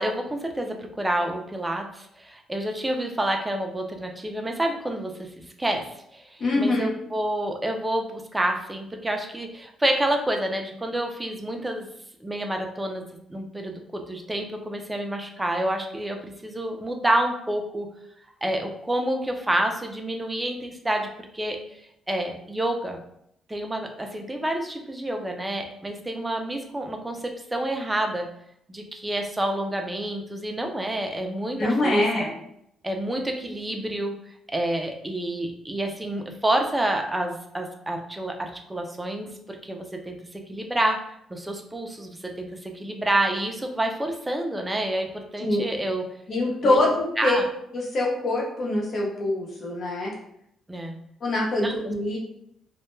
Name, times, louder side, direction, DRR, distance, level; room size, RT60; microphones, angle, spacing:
voice 1, 0.0-11.9 12.2-13.0 13.3-17.9 18.4-21.1 21.3-21.8 22.1-23.0 23.5-28.3 28.7-32.3 32.8-34.1 34.5-40.2 40.5-41.0 41.3-46.0 46.6-46.8 47.2-47.5 50.7-51.0 51.6-51.7, right 1 dB, 15° right, 3 dB, 0.4 m, -28 dB
voice 2, 6.4-6.9 31.6-32.3 45.4-45.6 46.3-47.4 47.7-50.1 51.2-52.2, left 2 dB, 55° left, -3 dB, 0.8 m, -24 dB
2.1 x 2.1 x 3.0 m, 0.74 s
cardioid pair, 90°, 0 cm